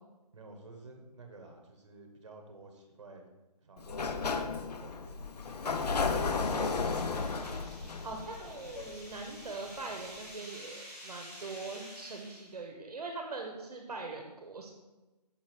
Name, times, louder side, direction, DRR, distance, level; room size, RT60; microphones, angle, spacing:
voice 1, 0.3-3.3 3.6-5.7, right 3 dB, 45° right, 4 dB, 1.1 m, -52 dB
Sliding door, 3.8-9.5, left 4 dB, 70° left, 0.6 m, -33 dB
sound 1, 5.1-12.7, equal, 20° left, 1.8 m, -50 dB
voice 2, 7.1-14.7, right 3 dB, 65° right, 3 dB, 0.9 m, -42 dB
5.8 x 4.7 x 4.4 m, 1.1 s
hypercardioid pair, 175°, 21 cm